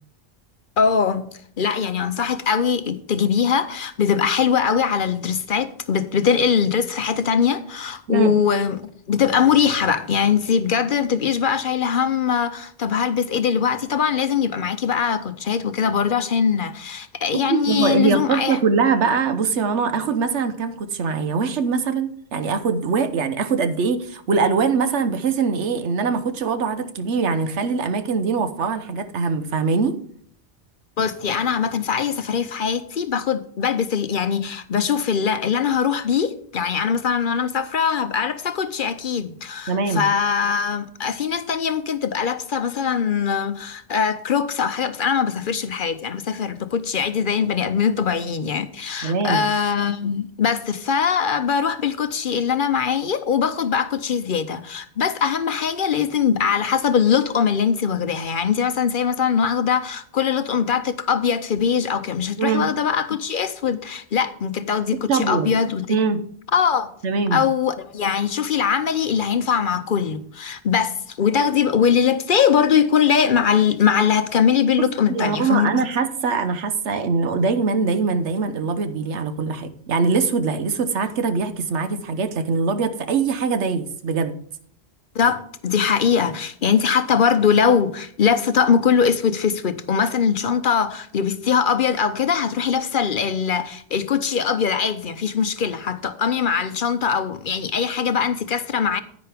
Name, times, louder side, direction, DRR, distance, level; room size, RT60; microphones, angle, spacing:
voice 1, 0.8-1.3 1.6-18.6 31.0-66.0 66.5-66.9 67.3-75.8 85.1-99.0, left 7 dB, 55° left, 0.7 m, -21 dB
voice 2, 17.3-29.9 39.7-40.1 49.0-49.4 62.4-62.7 65.1-65.5 65.9-66.2 67.0-67.4 74.8-84.4, right 5 dB, 85° right, 1.2 m, -22 dB
10.0 x 9.6 x 3.4 m
omnidirectional pair, 1.2 m